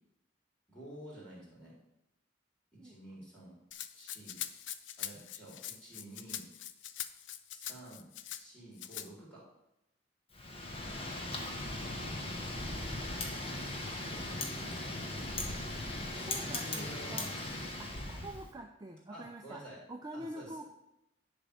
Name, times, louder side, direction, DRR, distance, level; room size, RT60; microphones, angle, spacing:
voice 1, 0.7-1.7 2.7-3.6 4.0-4.4 5.0-6.5 7.5-9.4 14.1-14.3 16.1-17.3 19.1-19.8 20.1-20.5, right 1 dB, 5° left, -7 dB, 3.7 m, -50 dB
voice 2, 2.8-3.2 16.3-17.3 17.8-19.6 19.9-20.6, right 1 dB, 20° right, 3 dB, 0.5 m, -46 dB
Rattle (instrument), 3.7-8.4 8.8-9.1, left 11 dB, 80° left, 0.5 m, -43 dB
Wind, 10.3-18.5, left 2 dB, 30° left, 1.2 m, -38 dB
10.5 x 3.6 x 6.9 m, 0.86 s
head